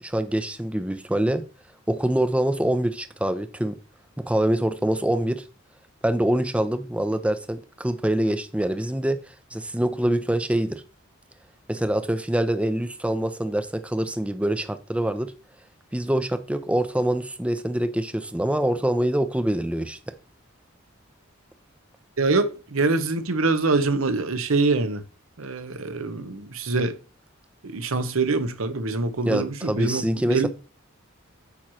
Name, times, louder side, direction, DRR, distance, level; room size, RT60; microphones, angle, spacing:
voice 1, 0.0-1.4 1.9-3.8 4.2-5.4 6.0-9.2 9.5-10.8 11.7-15.3 15.9-20.0 29.2-30.5, right 1 dB, 5° right, 0.5 m, -25 dB
voice 2, 22.2-25.0 25.4-27.0 27.7-30.5, right 3 dB, 85° right, 0.9 m, -24 dB
8.6 x 3.1 x 6.2 m
head